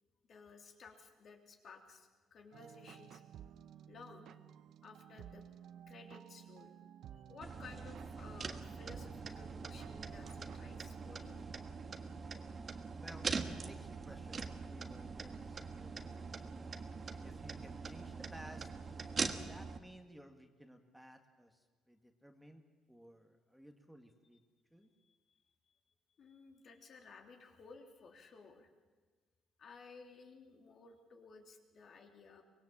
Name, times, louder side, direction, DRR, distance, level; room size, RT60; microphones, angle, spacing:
voice 1, 0.3-3.2 3.9-4.3 4.8-5.5 5.9-6.7 7.3-11.5 25.0-25.2 26.2-28.7 29.6-32.4, left 4 dB, 50° left, 3 dB, 3.2 m, -56 dB
sound 1, 2.5-12.4, right 9 dB, 65° right, 0.7 m, -56 dB
sound 2, 7.4-19.8, right 4 dB, 35° right, 1.4 m, -43 dB
voice 2, 13.0-16.2 17.2-18.7 19.3-24.4 24.7-24.9, equal, ahead, 5 dB, 1.9 m, -56 dB
24.5 x 21.0 x 7.4 m, 1.4 s
cardioid pair, 135°, 0 cm